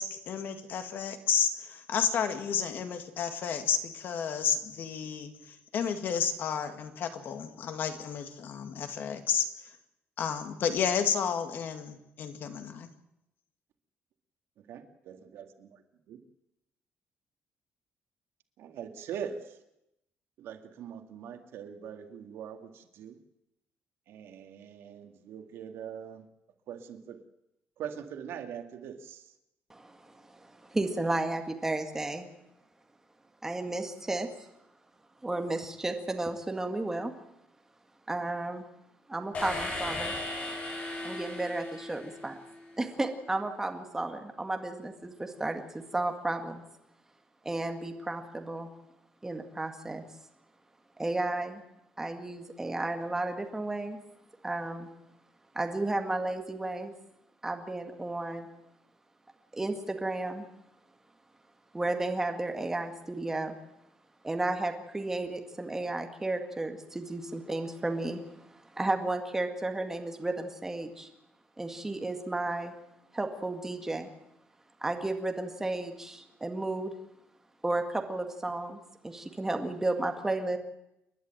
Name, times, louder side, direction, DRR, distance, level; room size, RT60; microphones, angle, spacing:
voice 1, 0.0-5.3 5.7-9.5 10.2-12.9, left 7 dB, 50° left, 7 dB, 2.0 m, -31 dB
voice 2, 14.6-15.8 16.1-16.2 18.6-19.6 20.4-23.2 24.1-26.3 26.7-27.2 27.8-29.4, right 8 dB, 75° right, 6 dB, 2.1 m, -42 dB
voice 3, 29.7-32.3 33.4-34.3 35.2-37.1 38.1-38.7 39.1-40.1 41.0-42.4 42.8-46.6 47.5-48.7 49.2-50.0 51.0-51.6 52.0-54.0 54.4-54.9 55.5-56.9 57.4-58.5 59.5-60.5 61.7-63.6 64.2-71.1 71.6-72.7 73.1-74.1 74.8-76.9 77.6-78.8 79.0-80.6, right 2 dB, 10° right, 5 dB, 1.9 m, -33 dB
sound 1, 39.3-42.5, left 2 dB, 35° left, 5.6 m, -36 dB
29.0 x 11.5 x 9.1 m, 0.85 s
cardioid pair, 170°, 4 cm